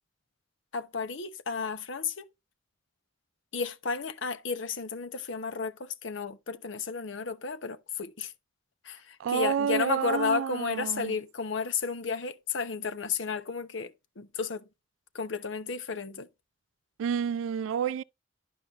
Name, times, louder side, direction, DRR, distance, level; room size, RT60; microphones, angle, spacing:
voice 1, 0.7-2.3 3.5-8.3 8.8-14.7 15.1-16.3, left 5 dB, 70° left, 0.8 m, -33 dB
voice 2, 9.2-11.1 17.0-18.0, right 8 dB, 75° right, 0.3 m, -29 dB
11.5 x 5.5 x 2.4 m
head